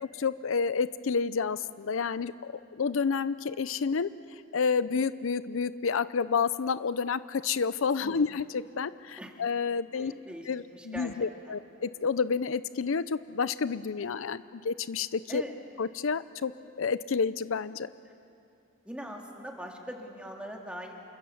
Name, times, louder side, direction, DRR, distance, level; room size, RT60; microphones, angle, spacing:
voice 1, 0.0-4.1 4.5-10.1 10.5-15.4 15.8-16.5 16.8-17.9, left 5 dB, 75° left, 15 dB, 0.5 m, -30 dB
voice 2, 9.9-11.1 11.5-11.6 14.0-14.1 15.3-15.6 18.0-18.1 18.8-20.9, equal, 5° right, 1 dB, 2.4 m, -42 dB
28.0 x 25.0 x 7.1 m, 2.7 s
head